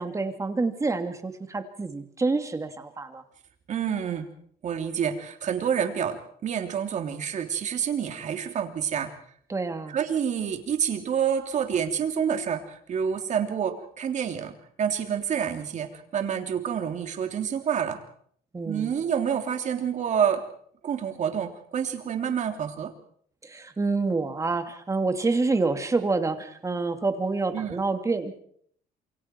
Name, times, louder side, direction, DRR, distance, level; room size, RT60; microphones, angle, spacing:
voice 1, 0.0-3.2 9.5-10.0 18.5-18.9 23.4-28.4, right 3 dB, 20° right, 6 dB, 2.7 m, -27 dB
voice 2, 3.7-4.3 4.6-9.1 9.9-14.5 14.8-18.0 18.6-20.4 20.8-22.9 27.5-27.8, right 8 dB, 50° right, 5 dB, 3.3 m, -28 dB
27.5 x 24.0 x 4.7 m, 0.63 s
cardioid pair, 115°, 16 cm